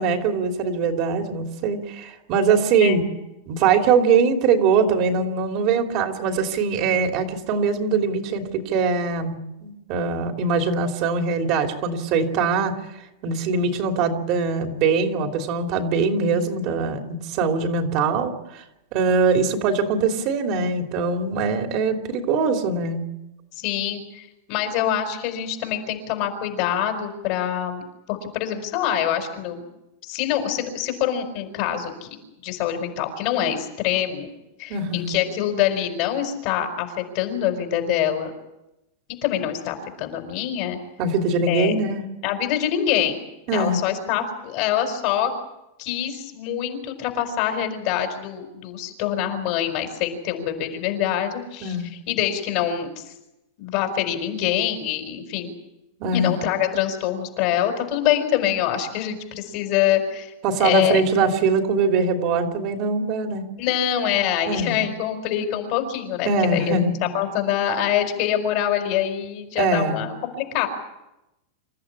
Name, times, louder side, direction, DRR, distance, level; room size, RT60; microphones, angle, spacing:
voice 1, 0.0-3.0 3.5-9.4 9.6-12.7 13.2-18.6 18.9-23.0 34.7-35.1 41.0-42.0 43.5-43.8 51.6-51.9 56.0-56.3 60.4-63.5 64.5-64.7 66.2-66.9 69.5-70.0, right 4 dB, 40° right, 4 dB, 3.0 m, -22 dB
voice 2, 23.6-27.8 28.1-29.6 30.0-32.1 32.4-34.3 34.6-38.3 39.2-40.8 41.5-41.7 42.2-43.2 43.5-45.3 45.8-51.8 52.1-52.9 53.6-55.5 56.1-60.3 60.6-61.0 63.6-66.8 67.1-70.7, left 10 dB, 40° left, 6 dB, 4.8 m, -25 dB
27.0 x 14.5 x 9.9 m, 0.92 s
supercardioid pair, 165°, 0 cm